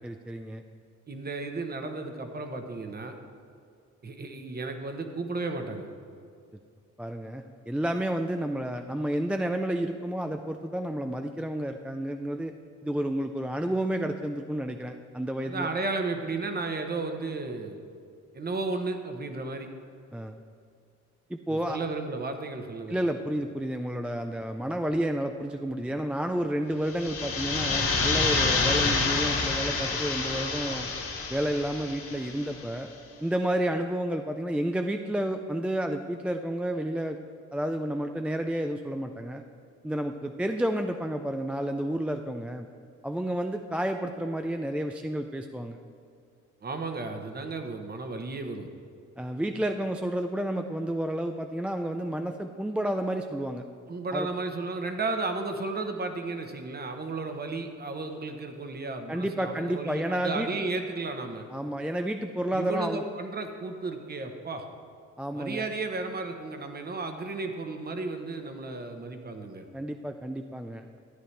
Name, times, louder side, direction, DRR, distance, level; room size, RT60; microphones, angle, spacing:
voice 1, 0.0-0.6 7.0-12.5 12.8-15.7 20.1-20.3 21.3-21.8 22.9-30.9 31.3-32.9 33.2-37.2 37.5-39.4 39.8-42.7 43.0-45.8 49.2-53.6 54.1-54.3 59.1-60.5 61.5-63.0 65.2-65.7 69.7-71.0, right 1 dB, 5° right, 5 dB, 0.3 m, -30 dB
voice 2, 1.1-3.1 4.0-5.9 15.4-17.8 18.3-19.7 21.5-23.1 46.6-48.7 53.9-61.5 62.5-64.7 65.3-69.6, right 3 dB, 30° right, 5 dB, 1.0 m, -34 dB
sound 1, 26.9-32.5, left 4 dB, 50° left, 2.0 m, -28 dB
13.0 x 9.0 x 3.3 m, 2.3 s
cardioid pair, 90°, 30 cm